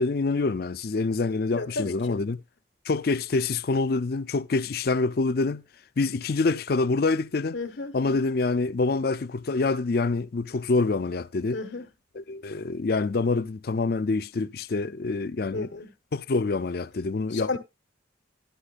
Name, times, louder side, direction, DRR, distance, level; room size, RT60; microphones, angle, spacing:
voice 1, 0.0-2.4 2.9-5.6 6.0-7.6 7.9-11.6 12.2-15.7 16.1-17.6, left 3 dB, 55° left, 0.5 m, -26 dB
voice 2, 1.5-2.2 7.5-8.0 11.5-11.9 15.5-15.9 17.3-17.6, left 3 dB, 90° left, 1.4 m, -32 dB
11.5 x 11.0 x 2.5 m
head